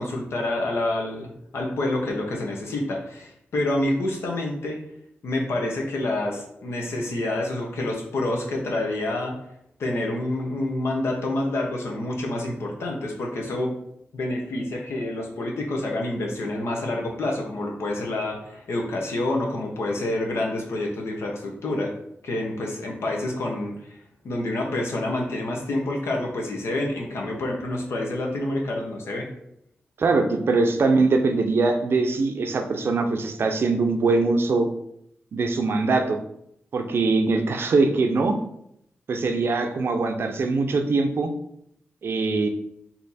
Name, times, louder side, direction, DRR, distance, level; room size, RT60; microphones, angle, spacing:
voice 1, 0.0-4.8 5.2-9.3 9.8-13.7 14.1-21.9 22.2-24.0 24.2-29.3, left 1 dB, 80° left, 0 dB, 1.0 m, -28 dB
voice 2, 30.0-34.7 35.3-36.2 36.7-38.4 39.1-41.3 42.0-42.5, right 3 dB, 60° right, 6 dB, 0.6 m, -22 dB
4.3 x 2.8 x 4.1 m, 0.75 s
wide cardioid pair, 100°, 4 cm